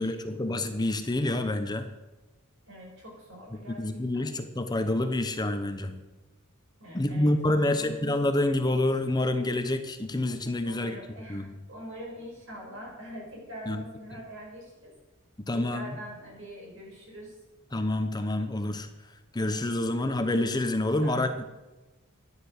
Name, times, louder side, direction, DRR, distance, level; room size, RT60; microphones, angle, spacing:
voice 1, 0.0-1.9 3.8-6.0 6.9-11.0 11.3-11.5 13.7-13.8 15.5-15.9 17.7-18.9 19.3-21.3, left 1 dB, 20° left, 7 dB, 0.8 m, -27 dB
voice 2, 2.7-4.3 6.8-8.0 10.6-14.9 15.5-17.4 21.0-21.2, equal, 60° right, -1 dB, 5.1 m, -44 dB
12.0 x 10.0 x 6.5 m, 1.1 s
head